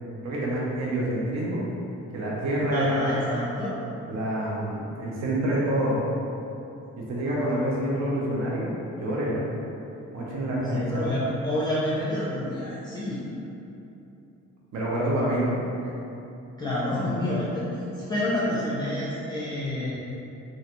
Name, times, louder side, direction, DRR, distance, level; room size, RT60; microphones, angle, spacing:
voice 1, 0.2-1.6 2.1-3.2 4.1-6.0 7.1-8.7 9.0-9.4 10.1-10.9 14.7-15.6 15.8-15.9, right 1 dB, 60° right, -5 dB, 0.8 m, -27 dB
voice 2, 2.7-3.8 10.6-13.3 16.6-17.6 18.0-20.0, left 1 dB, 15° left, -8 dB, 0.5 m, -28 dB
3.1 x 2.6 x 2.9 m, 2.9 s
cardioid pair, 90°, 30 cm